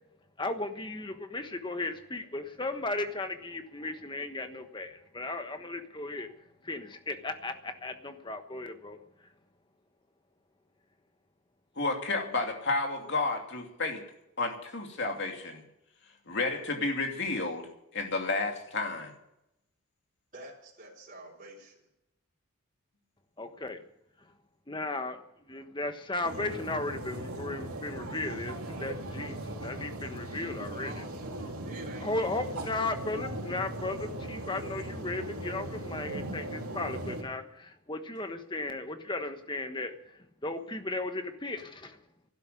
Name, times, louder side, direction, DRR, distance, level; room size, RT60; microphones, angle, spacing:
voice 1, 0.4-6.3 6.6-9.0 23.4-23.8 24.7-25.2 25.5-30.9 32.0-39.9 40.4-42.0, left 2 dB, 20° left, 8 dB, 1.2 m, -35 dB
voice 2, 11.8-14.0 14.4-15.6 16.3-17.7 17.9-19.1, left 3 dB, 55° left, 3 dB, 2.8 m, -31 dB
voice 3, 20.3-21.8 30.4-31.3 31.6-32.1, right 2 dB, 35° right, -2 dB, 4.5 m, -47 dB
sound 1, 26.2-37.2, right 1 dB, 85° right, 3.5 m, -38 dB
12.0 x 12.0 x 9.5 m, 0.84 s
head